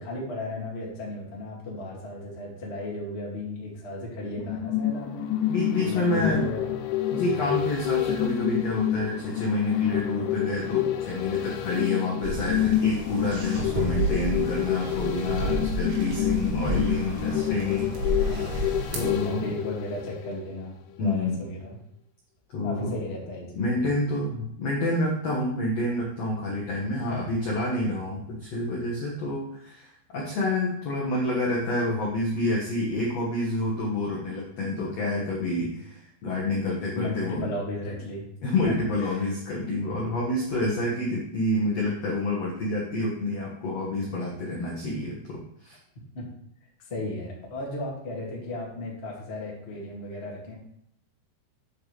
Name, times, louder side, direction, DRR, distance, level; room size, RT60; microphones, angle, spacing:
voice 1, 0.0-5.3 5.8-6.7 7.2-7.5 18.3-18.7 19.0-21.7 22.6-23.9 35.5-35.7 36.9-38.3 38.6-39.3 46.1-46.2 46.9-50.6, left 2 dB, 35° left, -4 dB, 0.9 m, -35 dB
sound 1, 4.4-20.6 21.0-21.1, left 12 dB, 85° left, 3.1 m, -28 dB
voice 2, 5.5-6.5 7.1-18.3 18.9-19.5 21.0-21.5 22.5-23.0 23.5-37.5 38.4-45.8, left 2 dB, 70° left, -4 dB, 1.5 m, -28 dB
sound 2, 12.2-19.3, right 1 dB, 75° right, 3.7 m, -31 dB
8.4 x 7.4 x 3.3 m, 0.73 s
omnidirectional pair, 5.2 m